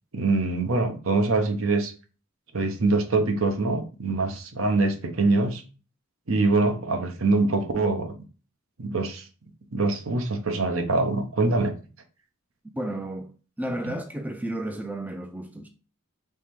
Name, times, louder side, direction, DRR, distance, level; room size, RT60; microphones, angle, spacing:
voice 1, 0.1-1.9 2.5-5.6 6.3-8.1 8.8-9.3 9.7-11.8, right 3 dB, 70° right, 0.9 m, -24 dB
voice 2, 12.7-15.7, right 1 dB, 5° right, 0.3 m, -33 dB
3.5 x 3.2 x 4.5 m
head